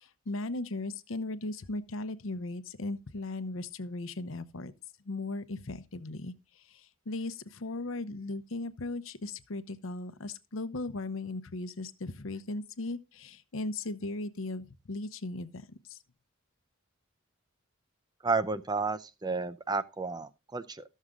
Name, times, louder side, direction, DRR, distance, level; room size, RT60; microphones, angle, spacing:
voice 1, 0.0-4.7 5.0-16.0, left 2 dB, 75° left, 0.8 m, -37 dB
voice 2, 18.2-20.8, right 4 dB, 20° right, 0.4 m, -32 dB
13.5 x 6.5 x 3.7 m
head